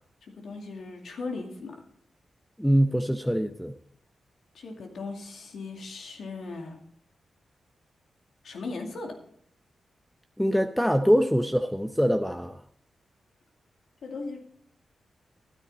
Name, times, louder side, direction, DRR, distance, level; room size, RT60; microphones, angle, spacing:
voice 1, 0.2-1.8 4.5-6.8 8.4-9.2 14.0-14.5, left 3 dB, 75° left, 3 dB, 2.4 m, -38 dB
voice 2, 2.6-3.7 10.4-12.6, equal, ahead, 7 dB, 0.7 m, -23 dB
12.5 x 10.0 x 4.2 m, 0.64 s
cardioid pair, 50°, 0 cm